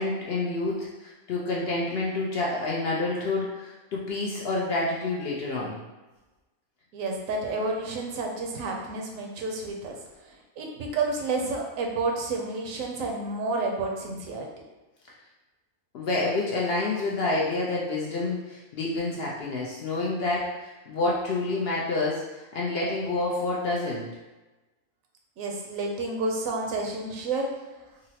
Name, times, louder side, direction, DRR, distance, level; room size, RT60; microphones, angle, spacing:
voice 1, 0.0-5.8 15.9-24.1, left 2 dB, 65° left, -4 dB, 0.6 m, -28 dB
voice 2, 6.9-10.0 10.6-14.5 25.4-27.5, right 3 dB, 80° right, 0 dB, 1.0 m, -30 dB
3.8 x 2.1 x 2.8 m, 1.1 s
omnidirectional pair, 1.4 m